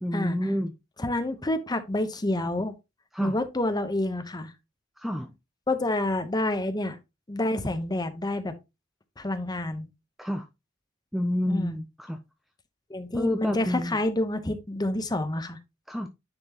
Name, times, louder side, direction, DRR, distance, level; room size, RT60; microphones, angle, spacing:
voice 1, 0.0-0.7 3.1-3.4 5.0-5.3 10.2-10.4 11.1-12.2 13.2-14.0 15.9-16.1, left 1 dB, ahead, 0.5 m, -29 dB
voice 2, 1.0-2.7 3.2-4.5 5.7-7.0 7.3-8.5 9.2-9.9 11.5-11.8 12.9-15.6, left 1 dB, 20° left, 0.9 m, -28 dB
9.7 x 4.4 x 2.9 m
head